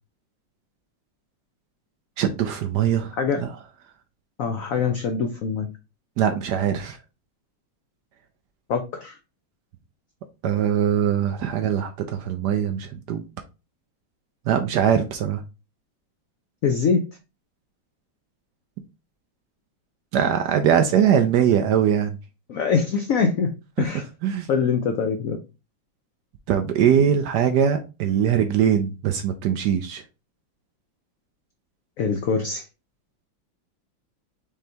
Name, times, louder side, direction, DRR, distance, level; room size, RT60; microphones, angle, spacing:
voice 1, 2.2-3.5 6.2-7.0 10.4-13.2 14.5-15.4 20.1-22.2 24.2-24.5 26.5-30.0, right 8 dB, 70° right, 7 dB, 1.0 m, -21 dB
voice 2, 3.2-3.5 4.4-5.7 8.7-9.2 16.6-17.0 22.5-23.5 23.8-24.0 24.5-25.4 32.0-32.6, left 5 dB, 85° left, 6 dB, 0.7 m, -23 dB
5.2 x 3.3 x 2.8 m, 0.29 s
omnidirectional pair, 2.2 m